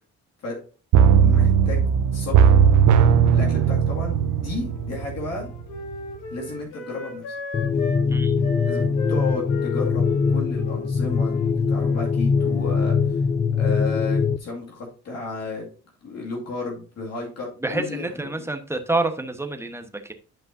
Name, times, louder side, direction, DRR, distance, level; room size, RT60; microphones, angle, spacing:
sound 1, 0.9-5.6 5.9-6.0, right 7 dB, 75° right, 0.7 m, -17 dB
voice 1, 1.2-1.8 2.1-2.5 3.3-5.5 6.3-7.3 8.7-13.2 13.6-15.7 16.0-18.5, left 3 dB, 55° left, -2 dB, 2.3 m, -33 dB
Wind instrument woodwind instrument, 4.1-8.0 8.4-12.8, left 3 dB, 90° left, 1.9 m, -37 dB
sound 2, 7.5-14.4, left 5 dB, 25° left, 0.4 m, -22 dB
voice 2, 17.6-20.1, right 2 dB, 10° right, 6 dB, 1.1 m, -28 dB
10.5 x 5.5 x 2.7 m, 0.38 s
cardioid pair, 90°, 30 cm